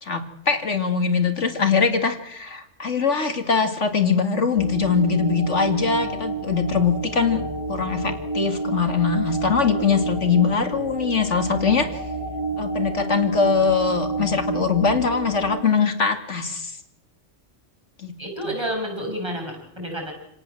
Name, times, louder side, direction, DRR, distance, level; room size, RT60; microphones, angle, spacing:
voice 1, 0.0-7.4 7.7-11.9 12.6-16.7 18.0-18.1, left 5 dB, 75° left, 7 dB, 2.7 m, -22 dB
sound 1, 4.5-15.5, right 4 dB, 90° right, 7.4 m, -30 dB
voice 2, 18.2-20.1, equal, 20° right, 2 dB, 7.9 m, -29 dB
28.5 x 18.5 x 7.7 m, 0.79 s
omnidirectional pair, 1.2 m